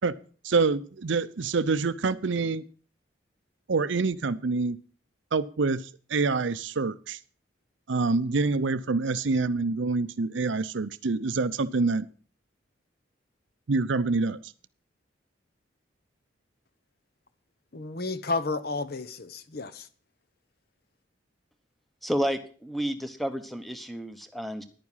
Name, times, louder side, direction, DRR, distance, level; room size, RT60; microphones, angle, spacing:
voice 1, 0.4-2.6 3.7-4.8 5.3-7.2 7.9-12.1 13.7-14.5, right 4 dB, 70° right, 0.6 m, -26 dB
voice 2, 17.7-19.9, left 3 dB, 50° left, 0.9 m, -32 dB
voice 3, 22.0-24.6, equal, ahead, 1.0 m, -31 dB
11.0 x 9.5 x 5.6 m
head